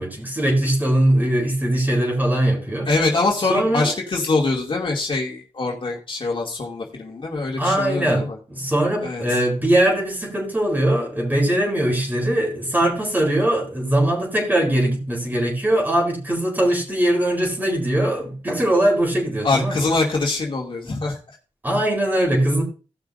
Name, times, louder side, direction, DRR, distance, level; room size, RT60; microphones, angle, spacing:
voice 1, 0.0-2.9 3.5-3.9 7.6-19.9 21.6-22.6, right 1 dB, 15° right, 0 dB, 4.2 m, -21 dB
voice 2, 2.9-8.4 9.0-9.4 19.4-21.2, left 3 dB, 45° left, -2 dB, 2.6 m, -23 dB
18.0 x 6.0 x 2.7 m, 0.35 s
wide cardioid pair, 145°, 12 cm